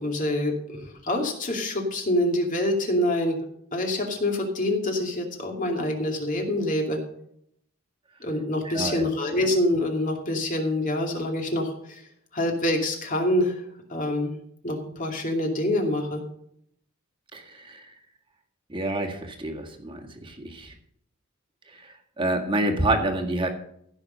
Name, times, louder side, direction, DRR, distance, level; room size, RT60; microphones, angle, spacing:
voice 1, 0.0-3.4 3.7-7.0 8.2-12.0 12.3-13.6 13.9-14.3 14.6-16.2, left 1 dB, 40° left, 2 dB, 2.6 m, -26 dB
voice 2, 8.6-9.1 17.3-17.9 18.7-20.7 21.8-23.5, right 1 dB, 25° right, 2 dB, 1.8 m, -28 dB
15.5 x 6.5 x 5.4 m, 0.70 s
head